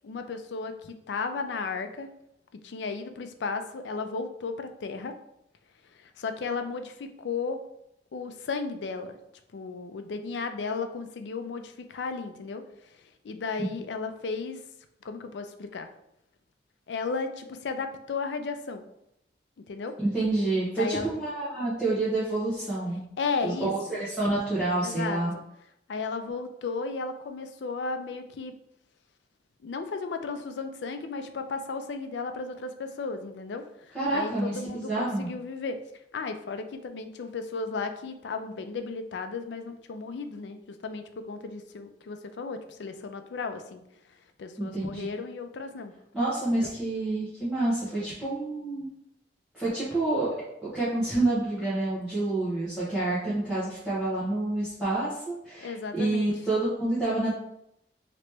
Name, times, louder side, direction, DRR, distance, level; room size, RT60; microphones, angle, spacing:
voice 1, 0.0-2.1 2.6-5.1 6.0-7.6 8.1-9.2 9.5-12.6 13.2-14.6 15.0-15.9 16.9-18.9 19.7-19.9 20.8-21.1 23.2-24.0 24.8-25.4 25.9-28.5 29.6-35.8 36.1-43.8 44.4-45.9 46.5-46.7 55.6-56.3, left 4 dB, 90° left, 7 dB, 0.4 m, -34 dB
voice 2, 20.0-23.0 23.4-25.3 33.9-35.3 44.6-45.1 46.1-48.9 49.5-50.3 50.6-57.3, right 2 dB, 5° right, -12 dB, 1.0 m, -28 dB
3.0 x 2.9 x 3.3 m, 0.79 s
head